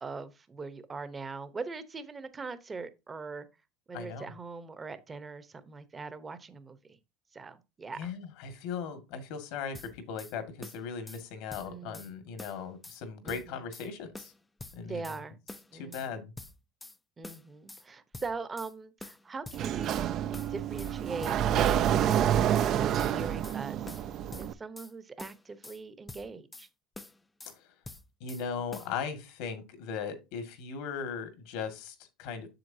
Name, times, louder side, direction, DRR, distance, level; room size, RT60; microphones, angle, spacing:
voice 1, 0.0-3.5 3.9-7.0 7.3-8.1 11.7-12.1 13.2-13.6 14.8-15.4 15.7-16.2 17.2-20.0 20.5-24.0 24.4-26.7, right 4 dB, 20° right, 0.9 m, -41 dB
voice 2, 3.9-4.3 7.9-14.3 14.8-15.1 15.7-16.3 27.5-27.7 28.2-32.5, left 6 dB, 70° left, 1.9 m, -38 dB
sound 1, 9.7-10.3 10.6-11.2 11.5-12.1 12.4-13.0 13.3-13.9 14.1-15.2 15.5-16.1 16.4-17.0 17.2-17.8 18.1-18.7 19.0-20.1 20.3-20.9 21.2-21.8 22.1-22.7 23.0-23.6 23.9-24.9 25.2-25.8 26.1-26.7 26.9-27.6 27.8-28.4 28.7-28.9, left 2 dB, 10° left, 0.5 m, -46 dB
Sliding door, 19.5-24.5, right 10 dB, 40° right, 0.5 m, -28 dB
7.8 x 7.0 x 2.7 m
cardioid pair, 145°, 0 cm